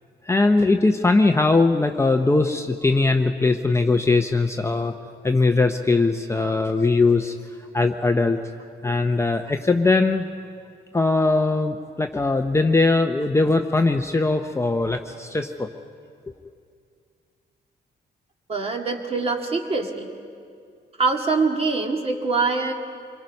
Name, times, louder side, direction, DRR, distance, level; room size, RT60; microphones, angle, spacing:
voice 1, 0.3-4.9 5.2-7.3 7.7-8.4 8.8-10.3 10.9-15.7, left 3 dB, 15° left, 5 dB, 0.7 m, -20 dB
voice 2, 18.5-20.1 21.0-22.7, right 4 dB, 35° right, 3 dB, 2.1 m, -24 dB
26.5 x 22.5 x 5.4 m, 2.3 s
cardioid pair, 140°, 18 cm